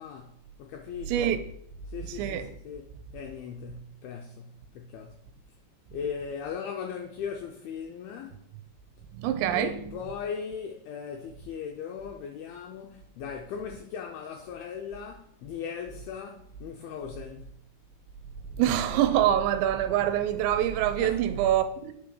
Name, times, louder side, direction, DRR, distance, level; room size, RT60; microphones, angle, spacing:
voice 1, 0.0-1.4 1.9-5.2 5.9-8.5 9.5-17.6 21.0-21.3, left 7 dB, 80° left, 2.2 m, -38 dB
voice 2, 9.1-9.9 18.6-21.9, right 11 dB, 90° right, 3.0 m, -25 dB
8.6 x 5.2 x 6.0 m
omnidirectional pair, 5.2 m